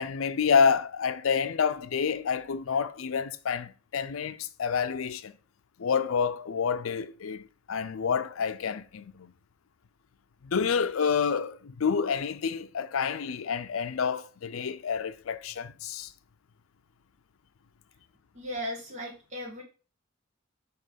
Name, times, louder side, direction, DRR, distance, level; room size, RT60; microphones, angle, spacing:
voice 1, 0.0-5.3 5.8-9.3 10.4-16.1, left 6 dB, 90° left, 0.5 m, -28 dB
voice 2, 18.3-19.6, equal, 35° right, 1.5 m, -36 dB
7.5 x 3.1 x 5.2 m
head